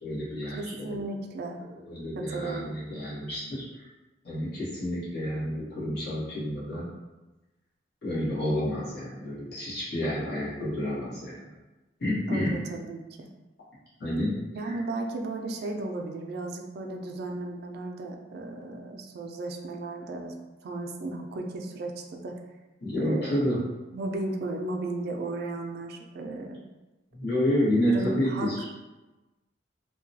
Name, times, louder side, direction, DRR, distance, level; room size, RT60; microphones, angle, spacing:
voice 1, 0.0-1.0 1.8-3.9 4.2-6.9 8.0-11.5 12.0-12.6 14.0-14.3 14.6-14.7 22.8-23.6 27.1-28.6, equal, 60° left, -10 dB, 1.3 m, -29 dB
voice 2, 0.5-1.6 2.2-2.7 12.3-13.3 14.5-20.3 20.6-22.4 23.0-23.4 23.9-26.6 27.9-28.6, right 2 dB, 55° right, 3 dB, 0.3 m, -35 dB
2.8 x 2.2 x 2.7 m, 1.1 s
head